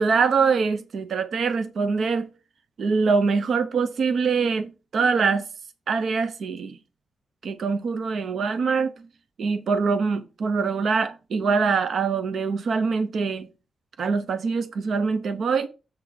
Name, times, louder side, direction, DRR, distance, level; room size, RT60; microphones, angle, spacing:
voice 1, 0.0-2.3 2.8-5.4 5.9-6.8 7.4-9.1 9.4-13.5 14.0-15.7, right 5 dB, 60° right, 0.7 m, -24 dB
7.3 x 3.7 x 6.5 m
wide cardioid pair, 170°, 0 cm